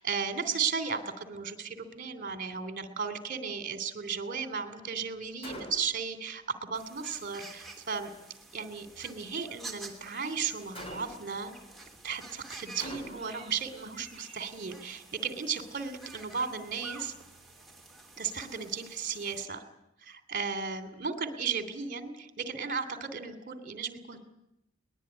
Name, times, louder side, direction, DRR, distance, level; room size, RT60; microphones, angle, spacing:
voice 1, 0.0-8.1 8.5-11.5 12.0-17.1 18.2-19.6 20.0-24.2, right 6 dB, 40° right, 9 dB, 2.9 m, -35 dB
Gunshot gunfire, 5.4-6.1 10.7-11.4 12.8-13.5, left 1 dB, 25° left, 3.5 m, -44 dB
sound 1, 6.7-19.5, right 3 dB, ahead, 3.0 m, -50 dB
22.0 x 20.0 x 9.8 m, 0.86 s
head